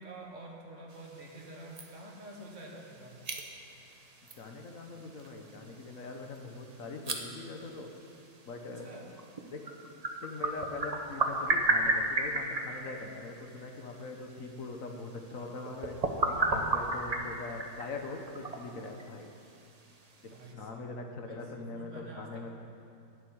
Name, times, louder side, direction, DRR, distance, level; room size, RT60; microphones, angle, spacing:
voice 1, 0.0-3.3 8.6-9.1 16.3-16.7 20.2-22.5, right 1 dB, 55° right, 0 dB, 1.8 m, -48 dB
sound 1, 0.9-20.5, right 2 dB, 30° right, 0.9 m, -36 dB
voice 2, 4.4-7.9 8.5-8.9 9.5-9.6 10.2-16.0 16.3-19.3 20.5-21.9 22.2-22.5, left 3 dB, 60° left, 3 dB, 1.4 m, -42 dB
12.0 x 7.2 x 9.5 m, 2.6 s
omnidirectional pair, 1.6 m